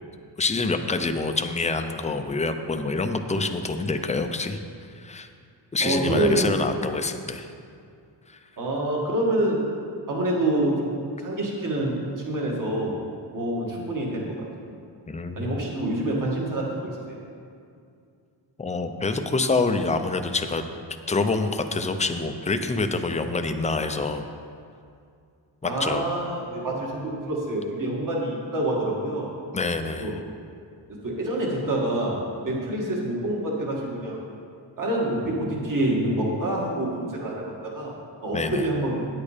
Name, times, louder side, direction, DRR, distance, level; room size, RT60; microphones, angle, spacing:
voice 1, 0.4-4.6 4.9-5.3 5.7-7.5 8.3-8.4 15.1-15.6 18.6-20.6 21.1-24.3 25.6-26.1 29.5-30.2 38.3-38.7, left 3 dB, 15° left, 7 dB, 0.5 m, -26 dB
voice 2, 5.8-6.6 8.6-9.7 10.1-12.0 12.2-13.0 13.3-14.4 15.3-17.2 25.6-29.3 30.0-30.1 30.9-34.2 34.8-37.9 38.2-39.1, right 1 dB, 45° right, -2 dB, 2.0 m, -27 dB
9.7 x 8.6 x 5.0 m, 2.4 s
wide cardioid pair, 135°, 45 cm